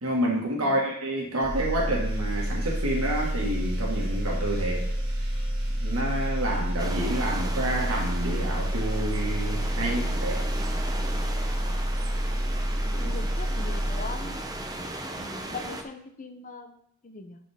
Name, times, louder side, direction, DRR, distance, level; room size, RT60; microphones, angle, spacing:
voice 1, 0.0-4.8 5.8-10.4 13.0-13.1, right 1 dB, 80° right, -2 dB, 1.7 m, -29 dB
sound 1, 1.4-14.8, equal, 50° right, 2.0 m, -29 dB
sound 2, 6.8-15.8, right 1 dB, 20° right, 0.6 m, -37 dB
voice 2, 12.9-14.3 15.2-17.4, left 4 dB, 40° left, 6 dB, 0.7 m, -40 dB
11.5 x 4.3 x 3.5 m, 0.69 s
head